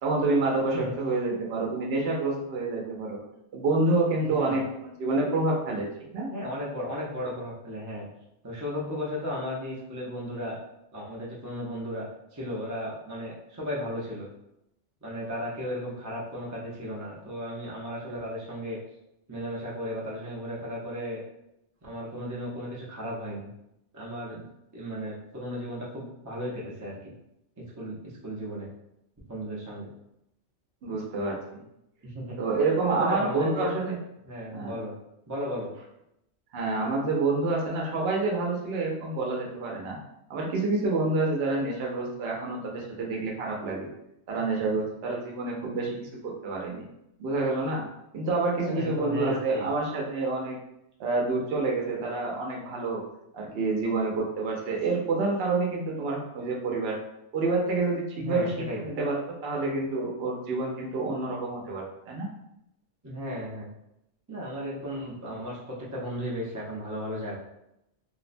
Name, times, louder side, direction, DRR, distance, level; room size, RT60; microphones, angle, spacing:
voice 1, 0.0-3.2 3.5-5.9 6.1-6.3 30.8-31.6 32.4-34.0 34.5-34.8 36.5-40.0 40.3-43.9 44.3-46.8 47.2-47.8 48.1-50.6 51.0-53.0 53.3-57.0 57.3-62.3, right 3 dB, 65° right, -1 dB, 0.8 m, -28 dB
voice 2, 4.3-4.6 6.3-8.1 8.4-10.6 10.9-12.1 12.3-14.3 15.0-18.8 19.3-21.2 21.8-23.5 23.9-24.4 24.7-27.1 27.6-28.7 29.3-29.9 30.9-31.0 32.0-32.4 33.0-33.7 34.2-34.9 35.3-35.7 48.6-49.7 58.2-58.8 63.0-63.7 64.3-67.4, equal, 25° right, -5 dB, 0.4 m, -35 dB
2.6 x 2.1 x 2.5 m, 0.82 s
omnidirectional pair, 1.2 m